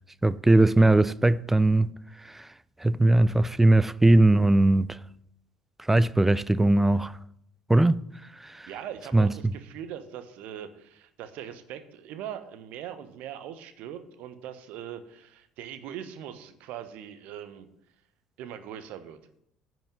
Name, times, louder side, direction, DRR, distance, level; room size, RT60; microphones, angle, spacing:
voice 1, 0.2-1.9 2.2-2.5 2.8-5.0 5.9-7.1 7.7-8.0 8.4-8.7 9.1-9.5, right 2 dB, 10° right, 0.4 m, -20 dB
voice 2, 8.7-17.7 18.4-19.2, right 9 dB, 55° right, 1.1 m, -41 dB
10.0 x 6.3 x 7.5 m
figure-of-eight pair, 55°, 3 cm